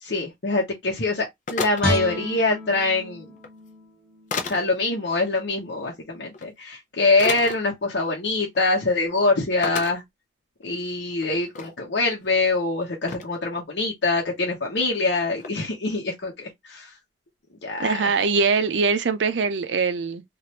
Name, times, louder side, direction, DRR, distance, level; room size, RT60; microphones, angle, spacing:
voice 1, 0.0-3.3 4.4-10.0 10.6-16.9 17.6-18.1, left 3 dB, 80° left, 0.9 m, -24 dB
sound 1, 1.5-2.0 3.4-3.5 4.3-4.6 6.3-6.4 7.2-7.6 8.4-8.6 8.9-9.0 9.6-9.9 10.6-10.7 11.1-11.7 12.4-12.5 13.1-13.4 15.4-15.5, left 4 dB, 45° left, 0.6 m, -31 dB
Guitar, 1.8-5.0 5.4-5.5, left 1 dB, 5° left, 0.9 m, -31 dB
voice 2, 17.8-20.2, right 4 dB, 90° right, 0.5 m, -22 dB
3.1 x 2.5 x 2.9 m
head